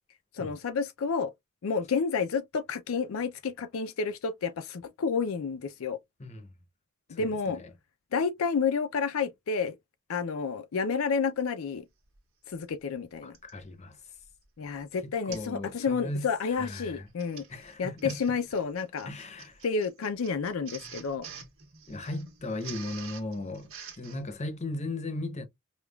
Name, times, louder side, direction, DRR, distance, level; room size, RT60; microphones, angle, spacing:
voice 1, 0.3-1.3 1.6-6.0 7.1-7.6 8.1-9.8 10.1-11.9 12.5-13.3 14.6-17.4 17.8-19.1 19.6-21.3, left 5 dB, 75° left, 0.4 m, -30 dB
voice 2, 7.1-7.7 13.2-14.0 15.0-17.1 17.5-18.2 19.1-19.6 21.9-23.7 24.0-25.4, left 2 dB, 35° left, 0.7 m, -37 dB
Printer, 12.2-12.3 13.3-13.6 14.2-14.4 14.7-14.8 15.3-15.6 15.9-16.2 17.0-24.2, right 7 dB, 75° right, 1.4 m, -47 dB
5.1 x 2.3 x 2.2 m
head